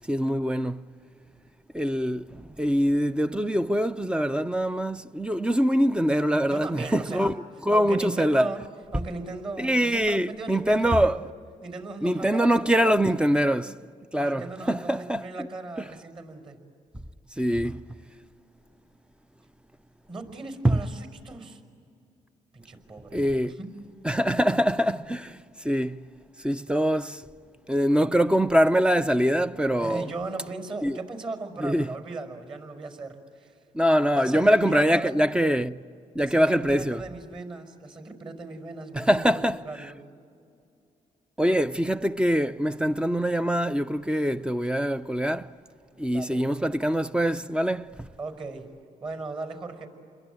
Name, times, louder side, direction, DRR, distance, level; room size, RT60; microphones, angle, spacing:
voice 1, 0.1-0.8 1.7-7.3 7.7-8.5 9.6-11.3 12.0-13.8 14.1-15.5 15.8-15.9 17.4-17.8 20.6-20.8 23.1-23.6 24.0-26.1 26.4-27.2 27.7-30.1 30.8-31.0 31.6-31.9 33.7-35.8 36.1-37.0 38.9-39.9 41.4-45.5 46.0-48.1, equal, 5° right, 0.6 m, -24 dB
voice 2, 6.5-7.3 7.7-11.2 11.6-13.3 14.2-16.6 20.1-21.6 22.5-23.2 23.4-23.7 29.6-33.5 34.1-35.1 36.2-40.0 46.1-46.4 48.2-48.7 49.0-49.9, right 3 dB, 40° right, 5.2 m, -37 dB
28.5 x 22.5 x 9.1 m
cardioid pair, 95°, 14 cm